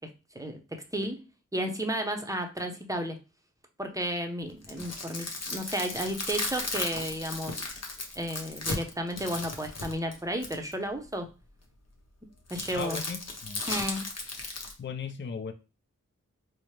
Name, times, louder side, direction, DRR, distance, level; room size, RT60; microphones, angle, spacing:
voice 1, 1.5-3.2 3.8-7.6 8.2-11.3 12.5-13.0 13.7-14.0, equal, 10° right, 4 dB, 0.7 m, -33 dB
sound 1, 4.5-10.7 12.5-14.7, left 3 dB, 50° left, 0.8 m, -36 dB
voice 2, 12.7-13.6 14.8-15.5, left 5 dB, 35° left, 8 dB, 0.4 m, -37 dB
4.3 x 2.1 x 3.1 m, 0.31 s
wide cardioid pair, 50°, 32 cm